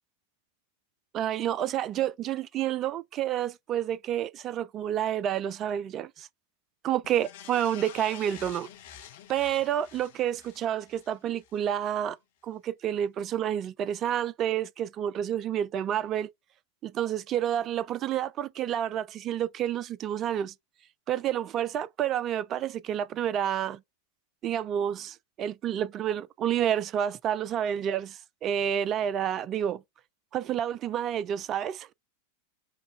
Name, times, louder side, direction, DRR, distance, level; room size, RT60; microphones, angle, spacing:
voice 1, 1.1-6.3 6.8-8.7 9.3-12.2 12.4-16.3 16.8-20.5 21.1-23.8 24.4-29.8 30.3-31.9, right 10 dB, 30° right, 0.3 m, -29 dB
sound 1, 7.0-11.6 12.0-12.1, left 10 dB, 55° left, 0.8 m, -48 dB
5.5 x 2.3 x 3.3 m
figure-of-eight pair, 90°, 0 cm